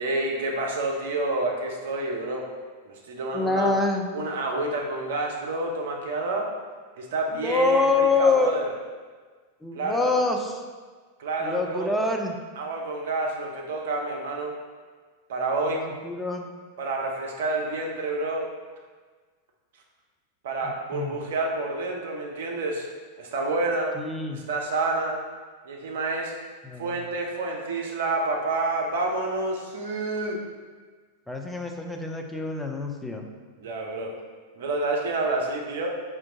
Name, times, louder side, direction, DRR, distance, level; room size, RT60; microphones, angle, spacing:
voice 1, 0.0-2.5 2.9-3.8 4.1-6.5 7.0-8.7 9.7-10.2 11.2-12.0 12.6-14.5 15.3-15.8 16.8-18.5 20.4-22.9 23.2-23.9 24.3-25.2 25.6-26.3 26.8-30.4 33.6-34.1 34.6-35.9, right 2 dB, 60° right, 1 dB, 0.6 m, -28 dB
voice 2, 3.3-4.1 7.4-8.5 9.6-10.5 11.4-12.4 15.7-16.5 20.9-21.1 24.0-24.4 26.6-26.9 31.3-33.2, left 3 dB, 5° left, 2 dB, 0.4 m, -25 dB
4.4 x 2.5 x 3.7 m, 1.5 s
figure-of-eight pair, 90°, 0 cm